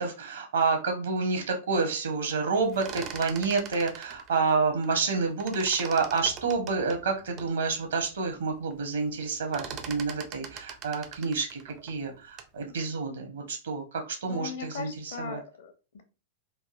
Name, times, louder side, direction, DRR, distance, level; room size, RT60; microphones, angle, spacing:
voice 1, 0.0-15.4, right 4 dB, 65° right, 3 dB, 0.9 m, -29 dB
sound 1, 2.6-5.1 5.4-7.5 8.0-8.1 8.4-8.8 9.1-12.6, right 7 dB, 30° right, 0.4 m, -42 dB
voice 2, 14.3-16.0, left 6 dB, 60° left, 7 dB, 0.7 m, -39 dB
3.4 x 2.5 x 2.5 m, 0.32 s
figure-of-eight pair, 95°, 0 cm